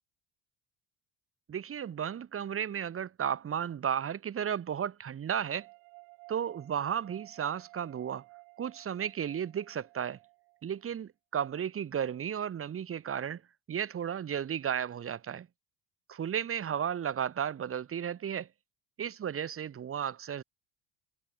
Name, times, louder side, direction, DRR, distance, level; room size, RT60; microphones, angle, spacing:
voice 1, 1.5-5.7 6.3-8.2 8.6-10.2 10.6-13.4 13.7-15.5 16.1-18.5 19.0-20.4, right 8 dB, 35° right, 1.2 m, -34 dB
sound 1, 5.6-10.8, right 40 dB or more, 75° right, 3.9 m, -55 dB
hypercardioid pair, 70°, 39 cm